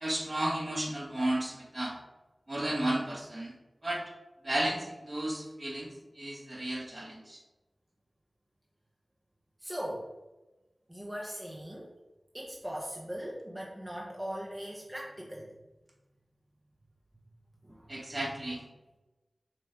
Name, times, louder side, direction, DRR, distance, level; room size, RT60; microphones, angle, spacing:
voice 1, 0.0-1.9 2.5-3.5 3.8-4.0 4.4-7.4 17.9-18.6, right 1 dB, 45° right, -1 dB, 1.6 m, -33 dB
voice 2, 9.6-10.1 10.9-11.9 12.3-15.5 17.6-18.0, equal, 15° right, -3 dB, 1.0 m, -39 dB
5.9 x 3.2 x 4.9 m, 1.1 s
cardioid pair, 40°, 0 cm